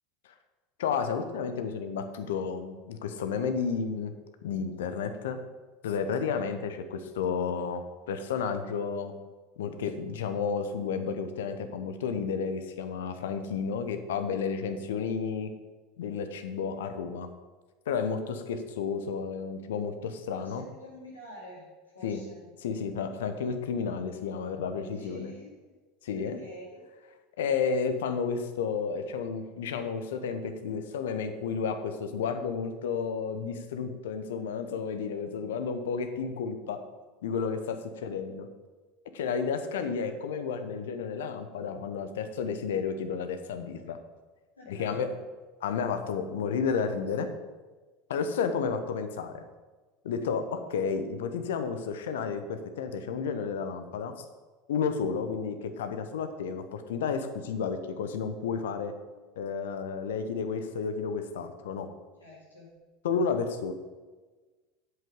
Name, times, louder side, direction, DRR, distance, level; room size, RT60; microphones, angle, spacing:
voice 1, 0.8-4.1 4.4-5.4 5.8-9.1 9.6-15.5 16.0-17.3 17.9-20.6 22.0-22.2 22.6-25.3 26.0-26.4 27.4-36.8 37.2-38.5 39.1-44.0 44.7-45.1 45.6-47.3 48.1-49.4 50.0-54.1 54.7-58.9 59.4-61.9 63.0-63.7, left 6 dB, 65° left, 8 dB, 0.9 m, -32 dB
voice 2, 6.2-6.5 20.4-21.7 21.9-22.4 24.9-25.7 26.1-26.9 37.7-38.1 44.6-45.0 62.2-62.7, left 1 dB, 80° left, -5 dB, 3.4 m, -49 dB
8.1 x 7.6 x 5.2 m, 1.3 s
figure-of-eight pair, 75°, 0 cm